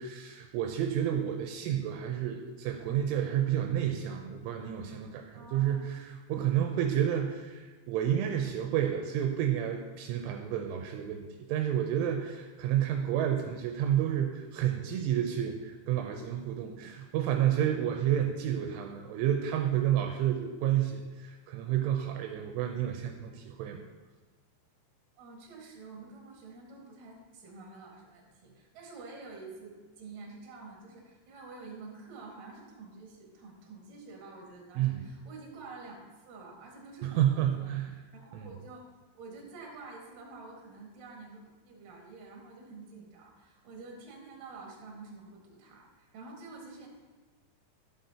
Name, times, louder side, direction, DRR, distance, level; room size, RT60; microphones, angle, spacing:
voice 1, 0.0-23.8 34.8-35.0 37.0-38.0 38.3-38.5, right 10 dB, 85° right, 3 dB, 3.0 m, -30 dB
voice 2, 5.3-5.8 25.2-38.9 39.1-46.9, right 3 dB, 55° right, -1 dB, 2.8 m, -48 dB
12.5 x 7.6 x 2.9 m, 1.3 s
omnidirectional pair, 5.6 m